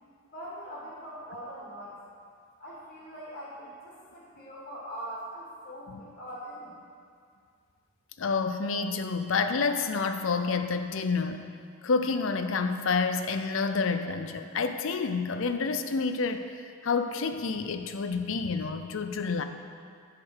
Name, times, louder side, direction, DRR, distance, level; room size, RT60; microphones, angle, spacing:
voice 1, 0.3-2.0 2.6-6.7, right 1 dB, 45° left, -7 dB, 2.1 m, -42 dB
voice 2, 8.2-11.5 11.8-16.5 16.8-19.4, left 4 dB, 60° left, 8 dB, 0.5 m, -29 dB
10.5 x 5.0 x 6.5 m, 2.2 s
head